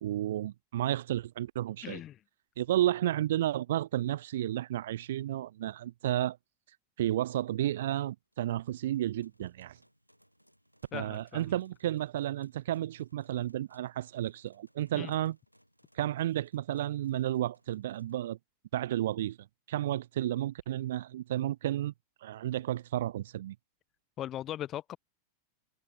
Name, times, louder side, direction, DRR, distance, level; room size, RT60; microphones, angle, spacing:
voice 1, 0.0-2.0 2.6-6.4 7.0-9.8 10.9-15.4 15.9-18.4 18.7-19.4 19.7-21.9 22.2-23.6, right 13 dB, 60° right, 0.3 m, -32 dB
voice 2, 1.8-2.2 10.9-11.5 14.9-15.1 24.2-25.0, left 12 dB, 30° left, 0.4 m, -39 dB
sound 1, 8.3-18.1, equal, 90° right, 2.9 m, -68 dB
figure-of-eight pair, 90°, 0 cm